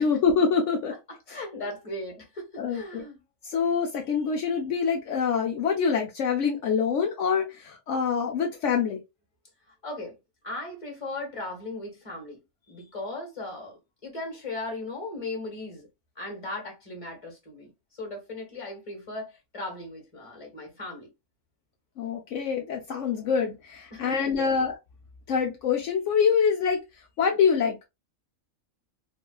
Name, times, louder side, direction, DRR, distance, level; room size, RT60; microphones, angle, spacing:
voice 1, 0.0-0.9 2.6-3.0 3.4-9.0 22.0-24.7 25.3-26.8 27.2-27.9, left 6 dB, 70° left, 1.0 m, -25 dB
voice 2, 1.1-3.2 9.7-10.1 10.4-12.4 12.7-15.9 16.1-21.1 23.9-24.6, left 2 dB, 25° left, 1.4 m, -37 dB
3.9 x 2.3 x 2.3 m
omnidirectional pair, 1.4 m